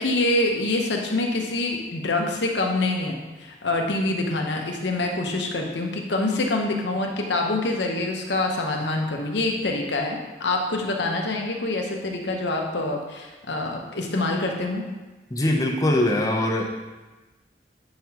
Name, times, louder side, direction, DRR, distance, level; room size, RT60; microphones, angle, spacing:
voice 1, 0.0-14.8, left 2 dB, 80° left, 1 dB, 1.0 m, -26 dB
voice 2, 15.3-16.6, left 1 dB, 20° left, 1 dB, 0.7 m, -22 dB
7.7 x 5.8 x 2.9 m, 1.2 s
head